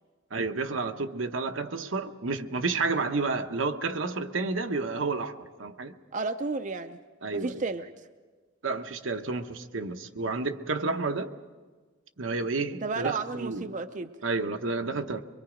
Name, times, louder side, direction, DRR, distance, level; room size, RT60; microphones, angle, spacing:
voice 1, 0.3-5.9 7.2-7.6 8.6-11.3 12.2-13.7 14.2-15.2, right 3 dB, 80° right, 1.0 m, -30 dB
voice 2, 6.1-7.0 7.3-7.9 12.7-14.1, right 4 dB, 40° right, 0.5 m, -32 dB
24.0 x 22.5 x 5.1 m
head